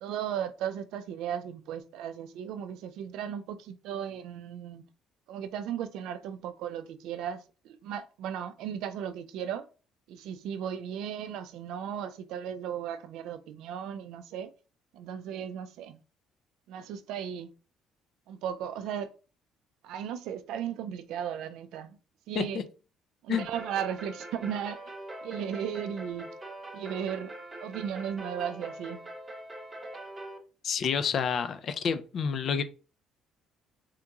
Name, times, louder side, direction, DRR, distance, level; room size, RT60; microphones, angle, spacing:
voice 1, 0.0-4.8 5.3-9.7 10.1-14.5 14.9-16.0 16.7-17.5 18.3-19.1 19.8-22.0 22.3-22.6 23.2-24.8 25.2-26.3 26.7-27.3 27.6-29.1, right 9 dB, 75° right, 0.3 m, -36 dB
sound 1, 23.3-30.4, right 1 dB, 15° right, 0.6 m, -43 dB
voice 2, 30.6-32.6, left 6 dB, 45° left, 0.3 m, -29 dB
3.6 x 2.9 x 2.3 m
cardioid pair, 150°, 0 cm